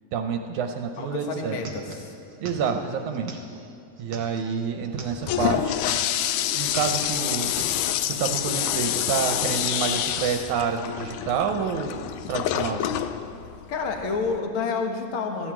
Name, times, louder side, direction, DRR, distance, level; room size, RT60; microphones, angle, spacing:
voice 1, 0.1-1.6 2.4-3.4 4.0-5.8 6.5-7.6 8.1-12.0 12.3-13.0, right 6 dB, 75° right, 5 dB, 2.0 m, -28 dB
sound 1, 0.9-1.0 1.2-5.4 5.7-6.4 6.6-8.0, right 3 dB, 50° right, 1.7 m, -42 dB
voice 2, 1.0-2.1 13.7-15.5, left 4 dB, 55° left, 3 dB, 1.6 m, -29 dB
Toilet flush, 5.0-14.4, left 11 dB, 80° left, 2.0 m, -27 dB
13.5 x 9.4 x 8.8 m, 2.4 s
omnidirectional pair, 3.8 m